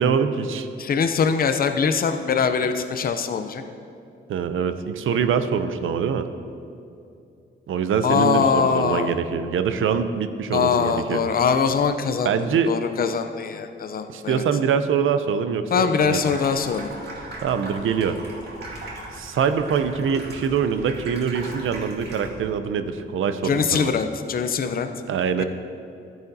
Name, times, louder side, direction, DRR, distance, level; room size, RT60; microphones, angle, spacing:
voice 1, 0.0-0.7 4.3-6.3 7.7-11.2 12.2-12.7 14.1-16.2 17.4-18.2 19.1-23.9 25.1-25.4, right 7 dB, 75° right, 10 dB, 0.6 m, -24 dB
voice 2, 0.8-3.6 8.0-9.1 10.5-14.4 15.7-16.9 23.4-24.9 25.4-25.5, left 6 dB, 45° left, 8 dB, 0.6 m, -22 dB
Water tap faucet / Sink (filling or washing), 16.1-22.5, right 2 dB, 55° right, 1.9 m, -38 dB
13.5 x 9.0 x 2.7 m, 2.6 s
wide cardioid pair, 120°, 21 cm